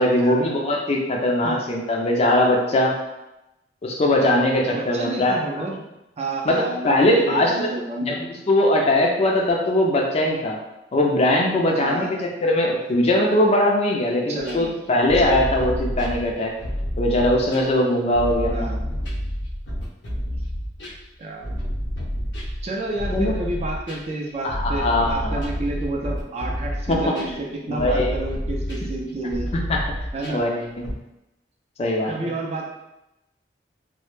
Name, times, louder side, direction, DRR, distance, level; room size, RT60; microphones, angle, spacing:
voice 1, 0.0-3.0 3.8-5.4 6.5-7.7 8.0-10.6 10.9-16.5 17.0-18.7 23.1-23.3 24.4-25.4 26.9-27.1 27.7-28.1 29.5-29.8 30.3-30.6 31.8-32.1, left 1 dB, 35° left, 0 dB, 0.4 m, -20 dB
voice 2, 4.7-5.8 6.2-8.2 11.8-12.2 14.3-14.8 18.5-18.8 21.2-21.7 22.4-29.5 30.1-30.4 32.0-32.7, right 2 dB, 35° right, -1 dB, 0.4 m, -30 dB
sound 1, 14.4-17.7 18.1-30.9, equal, 80° left, 0.6 m, -29 dB
2.1 x 2.0 x 3.0 m, 0.92 s
head